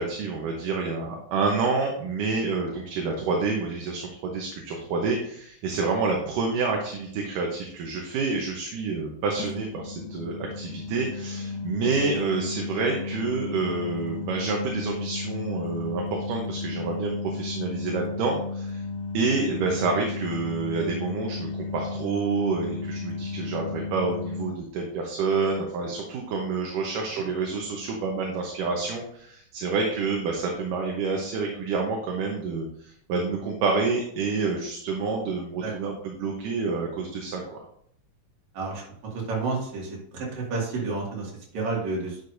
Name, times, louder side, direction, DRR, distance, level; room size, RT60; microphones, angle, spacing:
voice 1, 0.0-18.8 19.1-37.6, right 4 dB, 75° right, 1 dB, 2.5 m, -28 dB
sound 1, 6.6-6.7 9.4-24.5, left 4 dB, 80° left, 1.6 m, -34 dB
voice 2, 39.1-42.2, right 3 dB, 55° right, -3 dB, 3.4 m, -30 dB
10.0 x 6.6 x 2.6 m, 0.66 s
omnidirectional pair, 3.9 m